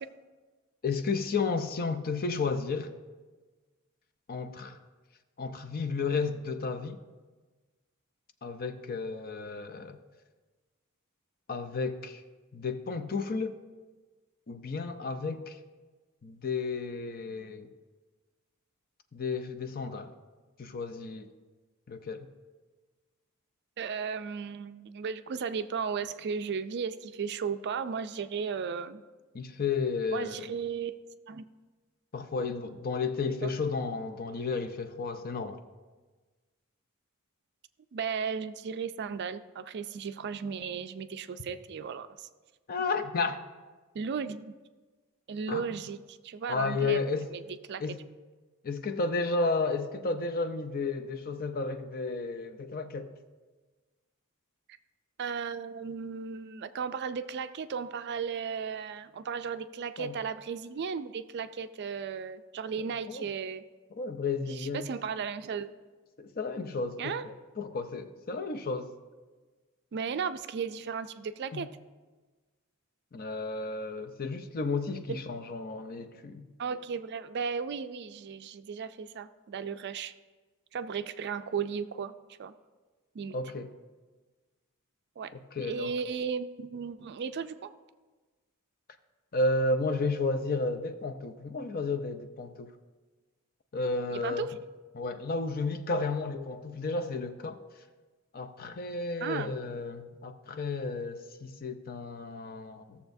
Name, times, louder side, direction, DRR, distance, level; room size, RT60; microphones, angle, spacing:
voice 1, 0.8-2.9 4.3-4.8 5.4-7.0 8.4-10.0 11.5-12.2 12.5-13.6 14.5-15.6 16.2-17.7 19.1-20.1 20.6-21.3 21.9-22.3 29.3-30.5 32.1-35.6 42.7-43.4 45.5-45.8 46.5-47.3 47.8-48.0 48.6-53.1 60.0-60.1 62.8-63.3 64.0-64.9 66.2-68.9 71.5-71.7 73.1-76.5 83.3-83.7 85.3-85.9 89.3-92.7 93.7-94.5 94.9-97.6 98.3-103.0, left 3 dB, 45° left, 0.5 m, -32 dB
voice 2, 23.8-29.0 30.1-31.0 31.3-31.4 33.4-33.5 37.9-42.3 43.9-44.5 45.3-47.0 47.3-47.4 47.7-47.8 55.2-63.6 64.6-65.7 67.0-67.2 69.9-71.7 75.1-75.2 76.6-80.1 80.7-82.1 82.4-82.5 83.1-83.4 85.2-85.3 85.7-87.7 94.1-94.5 99.2-99.5, right 6 dB, 50° right, 0.4 m, -35 dB
16.5 x 7.0 x 2.6 m
head